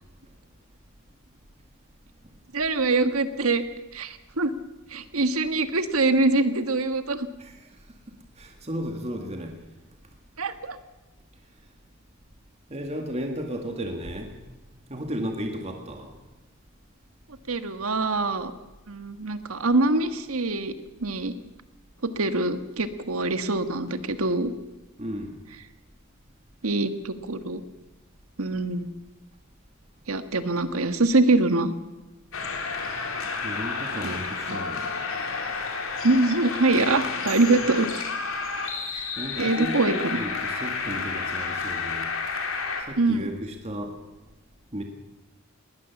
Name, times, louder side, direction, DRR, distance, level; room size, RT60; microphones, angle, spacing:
voice 1, 2.5-3.6 3.9-4.5 4.9-7.3 10.4-10.8 17.5-18.5 18.9-20.7 21.0-21.3 22.2-24.5 26.6-27.6 28.4-28.9 30.1-31.7 34.0-34.2 34.5-34.6 36.0-37.9 38.9-39.1 39.4-40.2 43.0-43.3, right 2 dB, 80° right, 10 dB, 1.5 m, -24 dB
voice 2, 8.4-9.6 12.7-14.4 14.9-16.1 25.0-25.4 33.4-34.9 39.2-42.1 42.9-44.0 44.7-44.8, equal, 30° right, 3 dB, 1.9 m, -34 dB
sound 1, 32.3-42.8, left 4 dB, 75° left, 3.5 m, -31 dB
20.0 x 19.0 x 7.2 m, 1.1 s
head